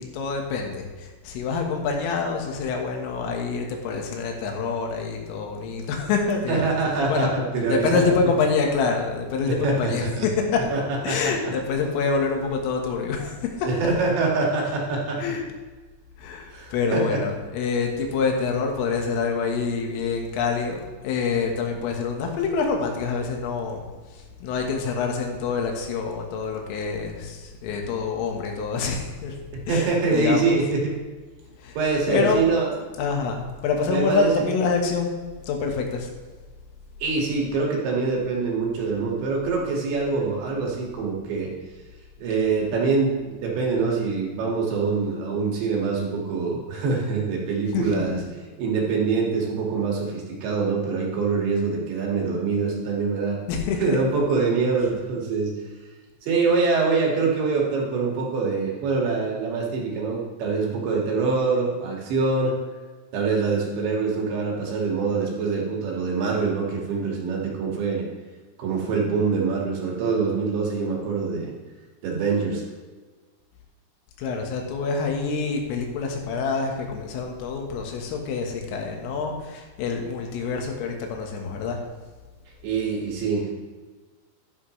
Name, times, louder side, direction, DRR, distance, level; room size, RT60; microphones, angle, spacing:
voice 1, 0.0-6.7 7.1-7.3 7.7-10.6 11.0-13.7 15.2-15.4 16.2-23.8 24.1-29.4 29.7-30.6 31.6-31.8 32.1-32.4 33.0-35.1 35.4-36.1 47.7-48.0 53.5-54.0 74.2-81.8, left 5 dB, 75° left, 2 dB, 3.9 m, -26 dB
voice 2, 6.5-8.1 9.5-10.3 10.7-10.8 11.1-11.3 13.6-15.2 16.5-17.2 29.7-30.9 31.8-32.7 33.9-34.4 37.0-41.5 42.2-48.2 48.6-53.4 53.8-55.5 56.2-62.5 63.1-68.1 68.6-71.5 72.0-72.6 82.6-83.5, right 4 dB, 65° right, -2 dB, 4.1 m, -24 dB
12.5 x 11.5 x 3.2 m, 1.4 s
omnidirectional pair, 6.0 m